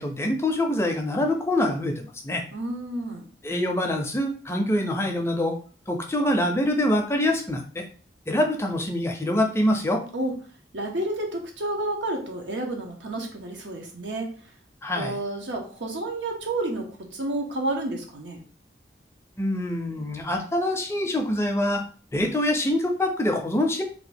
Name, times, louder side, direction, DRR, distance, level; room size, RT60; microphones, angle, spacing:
voice 1, 0.0-2.4 3.4-5.6 5.9-7.8 8.3-10.0 14.8-15.2 19.4-21.8 22.1-23.8, left 1 dB, 15° left, 3 dB, 0.4 m, -25 dB
voice 2, 2.5-3.3 10.1-10.3 10.7-14.3 14.9-18.4, right 2 dB, 85° right, 1 dB, 1.0 m, -30 dB
2.9 x 2.3 x 4.2 m, 0.41 s
head